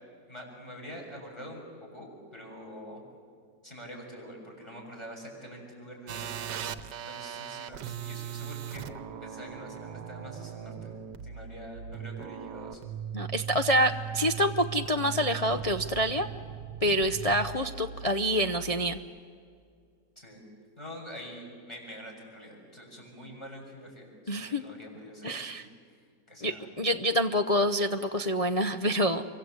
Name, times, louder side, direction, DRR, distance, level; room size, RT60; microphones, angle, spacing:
voice 1, 0.3-3.0 3.6-6.3 6.6-8.9 9.2-10.9 11.2-12.8 20.2-20.4 20.8-25.7 26.3-26.7, equal, 15° left, 0 dB, 7.0 m, -45 dB
sound 1, 6.1-19.0, right 8 dB, 70° right, 1.6 m, -39 dB
voice 2, 13.1-16.3 16.8-19.0 24.3-24.6 25.2-25.7 26.4-29.2, equal, 60° left, 4 dB, 0.3 m, -27 dB
28.0 x 24.0 x 8.1 m, 2.2 s
omnidirectional pair, 1.9 m